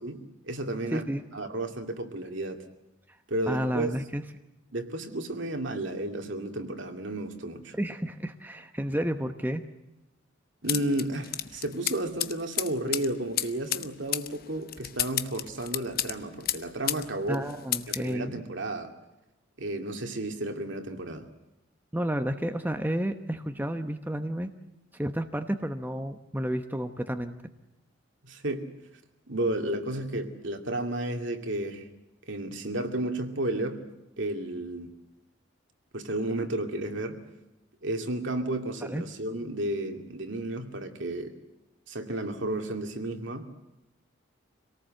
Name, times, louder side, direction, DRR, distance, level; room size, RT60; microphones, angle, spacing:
voice 1, 0.0-1.0 1.3-2.6 3.3-3.9 4.7-7.8 10.6-17.5 17.9-18.9 19.6-21.3 28.2-28.7 29.3-31.9 32.3-33.8 34.2-34.9 35.9-37.2 37.8-41.3 41.9-43.5, right 1 dB, 65° right, 5 dB, 2.5 m, -32 dB
voice 2, 0.9-1.2 3.5-4.2 7.8-9.6 17.3-18.4 21.9-24.5 24.9-27.3 38.9-39.0, equal, 10° right, 7 dB, 1.0 m, -31 dB
sound 1, 10.7-17.1 17.3-18.1, left 12 dB, 50° left, 0.9 m, -32 dB
26.0 x 18.5 x 7.8 m, 0.97 s
head